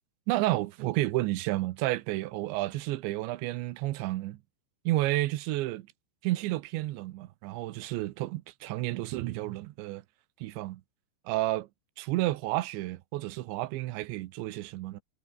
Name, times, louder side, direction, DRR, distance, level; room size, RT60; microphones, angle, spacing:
voice 1, 0.3-4.4 4.9-5.9 6.2-10.0 10.4-10.8 11.3-11.7 12.0-15.0, right 17 dB, 90° right, 3.3 m, -31 dB
omnidirectional pair, 5.1 m